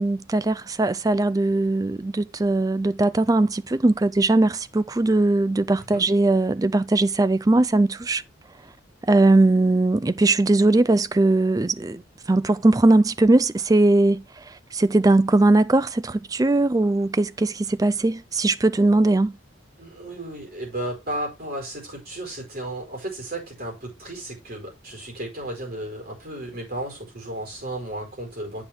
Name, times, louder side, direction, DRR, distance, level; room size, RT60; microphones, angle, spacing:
voice 1, 0.0-8.2 9.0-19.4, right 2 dB, 20° right, 0.3 m, -20 dB
voice 2, 19.8-28.6, right 1 dB, 45° right, 4.8 m, -34 dB
8.7 x 5.8 x 3.5 m
head